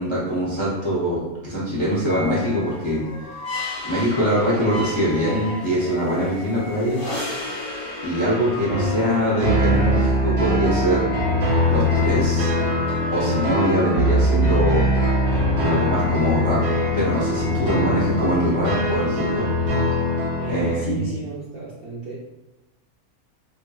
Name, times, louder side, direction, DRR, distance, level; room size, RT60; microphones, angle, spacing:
voice 1, 0.0-3.0 3.8-7.0 8.0-11.1 11.7-12.5 13.1-14.9 15.6-16.6 16.9-19.4 20.5-21.0, equal, 40° left, -8 dB, 0.4 m, -23 dB
sound 1, 2.0-18.2, left 2 dB, 90° left, 1.1 m, -36 dB
sound 2, 2.7-10.0, left 2 dB, 55° left, 1.0 m, -34 dB
sound 3, 8.7-20.7, equal, 90° right, 1.2 m, -22 dB
voice 2, 20.4-22.2, right 4 dB, 65° right, -7 dB, 0.6 m, -32 dB
2.7 x 2.6 x 2.3 m, 1.1 s
omnidirectional pair, 1.5 m